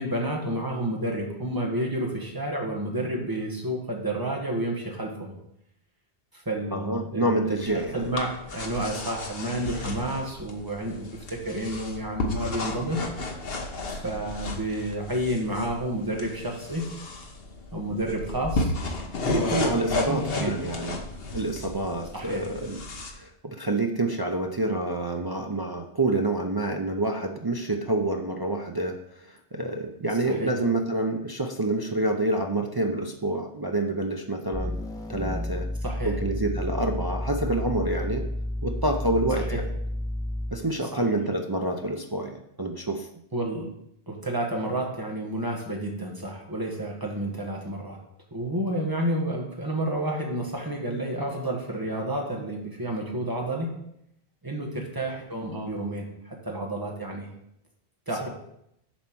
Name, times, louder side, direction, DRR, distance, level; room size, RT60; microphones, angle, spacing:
voice 1, 0.0-5.3 6.3-7.6 7.9-13.0 13.9-16.8 17.7-18.7 19.3-20.5 22.1-22.4 30.3-30.5 35.8-36.1 39.4-39.6 40.9-41.2 43.3-43.7 44.1-48.0 48.3-53.7 54.4-57.3 58.1-58.3, right 1 dB, 20° right, 0 dB, 1.5 m, -30 dB
voice 2, 6.7-8.1 19.2-21.0 21.3-22.8 23.1-34.8 35.1-35.7 36.0-38.3 38.6-39.7 40.5-43.1 58.2-58.3, right 2 dB, 35° right, 3 dB, 0.4 m, -28 dB
sound 1, 7.6-23.1, left 2 dB, 60° left, 1.2 m, -33 dB
sound 2, 34.5-40.7, left 1 dB, 5° left, 1.2 m, -31 dB
7.2 x 4.3 x 6.1 m, 0.77 s
omnidirectional pair, 1.1 m